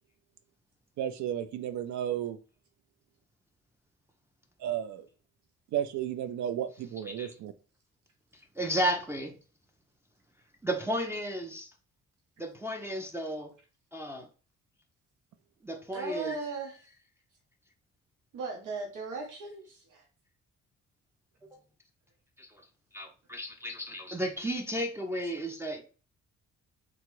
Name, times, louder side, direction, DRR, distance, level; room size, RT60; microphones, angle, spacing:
voice 1, 1.0-2.4 4.6-5.1 5.7-7.5, right 10 dB, 70° right, 0.5 m, -33 dB
voice 2, 8.6-9.4 10.6-11.7 12.4-13.5 13.9-14.3 15.6-16.4 22.4-22.6 22.9-25.8, equal, 10° right, 0.4 m, -33 dB
voice 3, 15.9-16.8 18.3-20.0, right 4 dB, 85° right, 0.9 m, -37 dB
2.9 x 2.3 x 3.0 m
cardioid pair, 90°, 30 cm